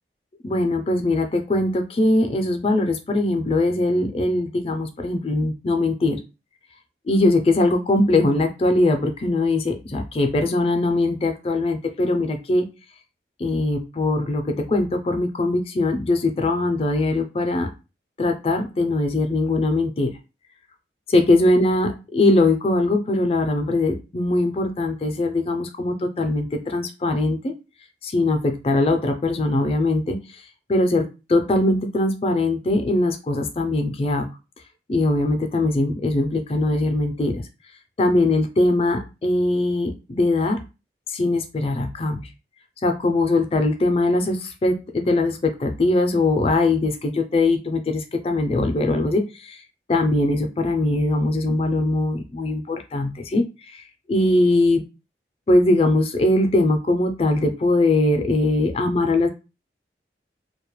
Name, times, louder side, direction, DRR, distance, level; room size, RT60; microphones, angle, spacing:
voice 1, 0.4-6.2 7.1-12.7 13.4-14.4 14.7-17.7 18.2-20.1 21.1-27.5 28.0-30.2 30.7-34.3 34.9-37.4 38.0-40.6 41.1-42.2 42.8-49.6 49.9-53.4 53.7-53.8 54.1-54.8 55.5-59.3, left 2 dB, 35° left, 5 dB, 0.4 m, -21 dB
2.2 x 2.0 x 2.9 m, 0.29 s
head